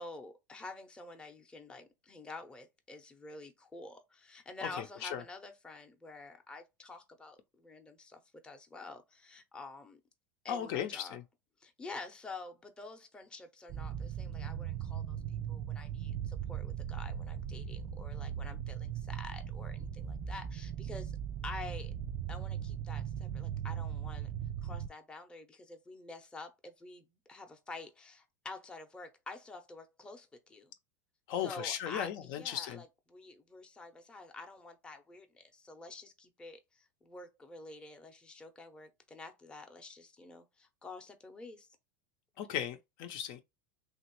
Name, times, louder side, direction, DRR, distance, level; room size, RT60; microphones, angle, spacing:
voice 1, 0.0-10.0 10.4-11.2 11.6-21.1 21.4-22.0 22.3-24.3 24.6-30.7 31.4-32.1 32.3-41.7, left 3 dB, 10° left, 0.6 m, -48 dB
voice 2, 4.6-5.2 10.5-11.2 31.3-32.8 42.4-43.4, left 9 dB, 55° left, 0.5 m, -37 dB
sound 1, 13.7-24.9, right 9 dB, 35° right, 0.4 m, -39 dB
3.0 x 2.4 x 2.9 m
supercardioid pair, 125°, 9 cm